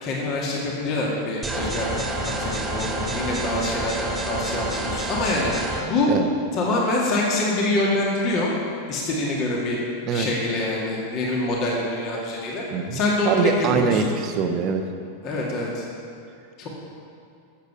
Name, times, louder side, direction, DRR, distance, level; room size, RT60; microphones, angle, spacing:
voice 1, 0.0-2.0 2.3-6.1 6.5-8.5 8.9-9.8 10.1-12.6 12.9-14.0 15.2-15.8 16.6-16.7, left 2 dB, 35° left, -3 dB, 2.2 m, -25 dB
sound 1, 1.4-5.8, right 1 dB, 15° right, 1.8 m, -28 dB
voice 2, 12.7-14.9, right 6 dB, 35° right, 6 dB, 1.0 m, -23 dB
13.0 x 8.2 x 6.2 m, 2.4 s
figure-of-eight pair, 90°, 0 cm